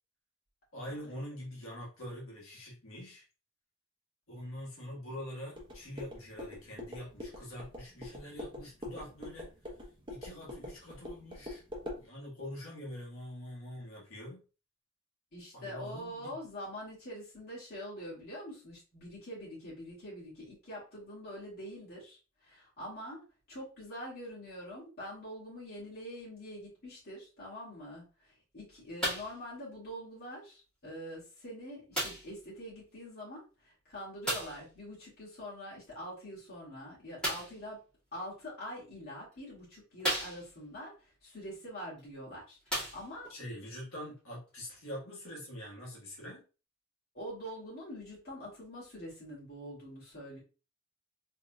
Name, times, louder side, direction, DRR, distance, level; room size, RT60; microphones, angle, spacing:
voice 1, 0.7-3.2 4.3-9.5 10.1-11.6 12.0-14.4 15.5-16.3 43.3-46.4, left 1 dB, 75° left, -4 dB, 1.6 m, -44 dB
sound 1, 5.5-12.0, left 1 dB, 25° right, 1.0 m, -44 dB
voice 2, 15.3-37.8 38.1-43.3 47.1-50.4, equal, 50° left, -8 dB, 2.1 m, -45 dB
sound 2, 29.0-29.4 30.3-30.4 31.9-32.4 34.2-34.7 37.2-37.6 38.6-38.7 39.3-39.4 40.0-40.7 42.0-42.1 42.6-43.4 44.2-44.3, equal, 5° left, 2.2 m, -35 dB
3.9 x 3.5 x 2.4 m, 0.33 s
head